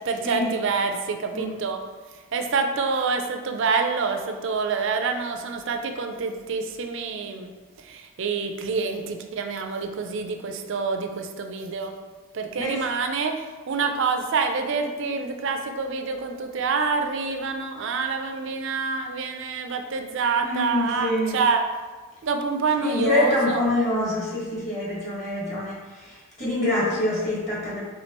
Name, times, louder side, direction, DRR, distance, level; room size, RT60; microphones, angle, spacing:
voice 1, 0.1-1.8 2.3-7.5 7.9-11.9 12.3-13.3 13.7-21.6 22.2-23.6, right 4 dB, 60° right, 5 dB, 0.4 m, -27 dB
voice 2, 20.4-21.4 22.8-27.8, left 1 dB, 35° left, -6 dB, 1.4 m, -26 dB
4.4 x 3.7 x 2.9 m, 1.3 s
head